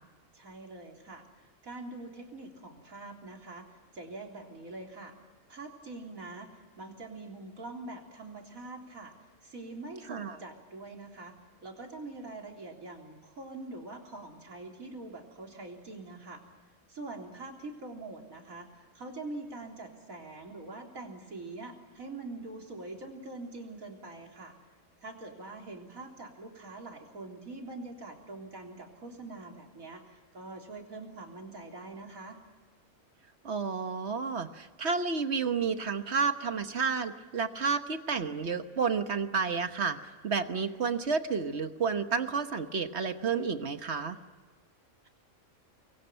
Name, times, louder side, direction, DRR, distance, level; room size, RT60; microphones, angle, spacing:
voice 1, 0.3-3.7 3.9-5.1 5.5-9.1 9.4-11.3 11.6-16.4 16.9-24.5 25.0-32.4, right 2 dB, 75° right, 1 dB, 4.0 m, -44 dB
voice 2, 33.4-44.2, right 5 dB, 55° right, 9 dB, 1.4 m, -31 dB
25.5 x 22.5 x 9.0 m, 1.4 s
omnidirectional pair, 1.5 m